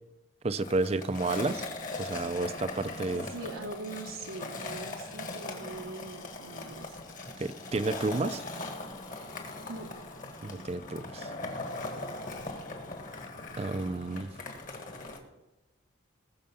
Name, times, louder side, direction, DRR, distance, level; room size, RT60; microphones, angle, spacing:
voice 1, 0.4-1.7 2.0-3.3 7.4-8.4 10.4-11.3 13.6-14.3, right 2 dB, 30° right, 14 dB, 0.4 m, -31 dB
Skateboard, 0.6-15.2, left 2 dB, 40° left, 1.6 m, -40 dB
voice 2, 3.1-7.0 9.7-9.9 10.5-10.7, right 2 dB, 85° right, 1 dB, 1.0 m, -42 dB
19.5 x 6.7 x 5.4 m, 1.0 s
head